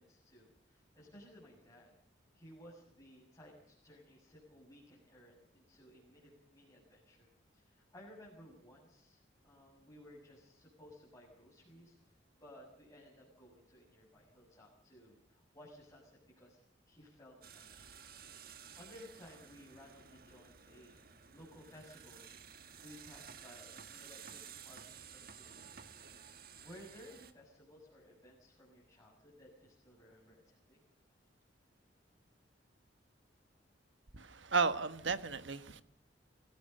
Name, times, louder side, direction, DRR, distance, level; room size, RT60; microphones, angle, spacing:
voice 1, 0.0-1.9 2.3-16.6 16.8-18.0 18.5-21.1 21.3-22.3 22.8-30.8, equal, 20° left, -4 dB, 7.3 m, -58 dB
sound 1, 17.4-27.3, right 7 dB, 55° right, 1.6 m, -54 dB
voice 2, 34.1-35.8, right 4 dB, 80° right, 12 dB, 1.3 m, -34 dB
24.5 x 18.0 x 6.8 m, 0.66 s
head